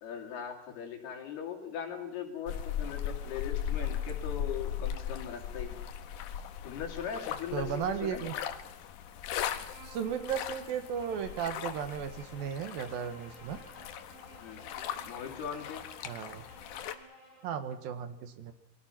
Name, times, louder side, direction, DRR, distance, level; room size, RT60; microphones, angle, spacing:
voice 1, 0.0-5.8 6.6-8.3 14.4-14.7 14.9-15.8, left 7 dB, 85° left, 3 dB, 4.8 m, -40 dB
sound 1, 2.5-17.0, left 9 dB, 65° left, 2.3 m, -38 dB
voice 2, 7.5-8.4 9.8-13.6 16.1-16.4 17.4-18.5, right 8 dB, 70° right, 10 dB, 3.1 m, -35 dB
Bowed string instrument, 9.6-17.5, right 1 dB, 20° right, 7.7 m, -55 dB
28.0 x 22.5 x 5.9 m, 0.80 s
omnidirectional pair, 4.4 m